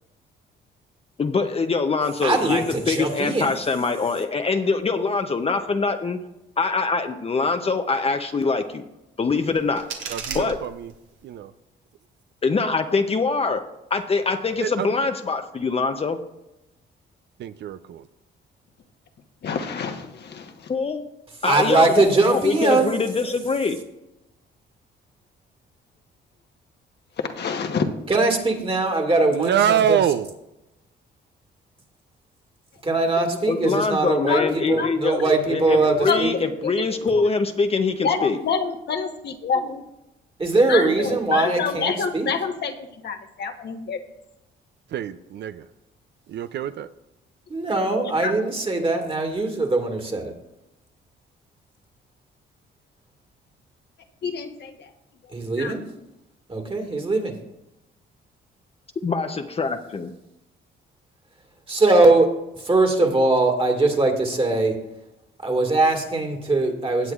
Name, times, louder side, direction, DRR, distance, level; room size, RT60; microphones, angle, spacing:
voice 1, 1.2-6.2 6.6-8.8 9.2-9.8 10.3-10.6 12.4-13.6 13.9-16.2 20.7-21.1 21.4-23.8 33.5-35.2 35.5-38.4 59.0-60.1, left 4 dB, 30° left, 7 dB, 0.6 m, -24 dB
voice 2, 2.2-3.5 21.5-23.0 28.1-30.0 32.8-36.3 40.4-42.3 47.5-50.3 55.3-55.8 56.5-57.4 61.7-62.3 62.6-64.8 65.4-67.1, right 2 dB, 25° right, 3 dB, 1.9 m, -21 dB
sound 1, 9.3-11.3, right 6 dB, 80° right, 1.6 m, -36 dB
voice 3, 10.1-10.9 11.2-11.5 14.6-14.9 17.4-18.1 29.3-30.3 34.7-34.9 44.9-45.7 46.3-46.9, right 9 dB, 65° right, 12 dB, 0.5 m, -25 dB
voice 4, 19.4-20.7 27.2-27.9 34.3-34.5 34.8-35.3 36.0-36.8 38.0-39.8 40.7-44.0 48.2-48.4 54.2-54.9 55.6-55.7, left 5 dB, 55° left, 5 dB, 1.1 m, -27 dB
17.0 x 8.0 x 2.4 m, 0.90 s
cardioid pair, 90°, 20 cm